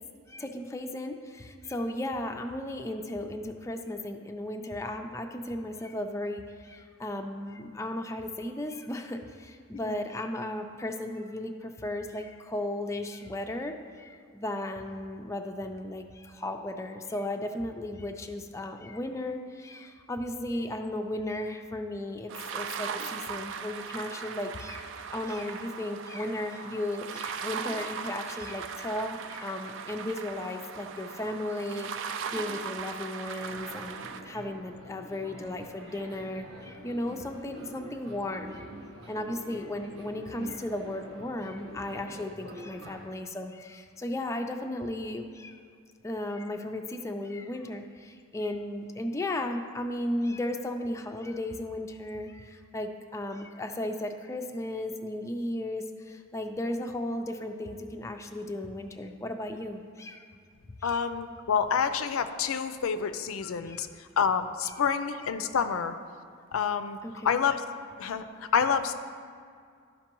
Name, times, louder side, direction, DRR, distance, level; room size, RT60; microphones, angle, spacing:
voice 1, 0.3-38.7 39.1-45.6 46.0-60.2 60.8-61.0 63.6-63.9 64.7-64.8 67.0-67.4, left 1 dB, 15° left, 4 dB, 0.3 m, -35 dB
sound 1, 22.3-34.2, right 6 dB, 60° right, 0.4 m, -38 dB
sound 2, 33.4-43.1, right 1 dB, 90° right, 1.2 m, -46 dB
voice 2, 60.8-65.9 66.5-67.0 67.2-67.6 68.0-68.9, left 6 dB, 80° left, 10 dB, 0.4 m, -28 dB
12.0 x 5.2 x 3.0 m, 2.2 s
head